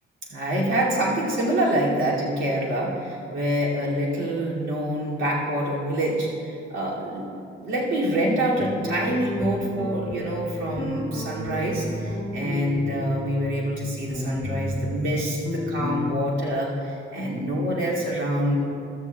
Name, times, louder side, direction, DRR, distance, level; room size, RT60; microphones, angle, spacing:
voice 1, 0.3-18.6, right 1 dB, 80° right, -5 dB, 2.7 m, -26 dB
sound 1, 8.6-16.1, left 1 dB, 25° left, 2.5 m, -32 dB
14.5 x 13.0 x 2.4 m, 2.5 s
cardioid pair, 90°, 20 cm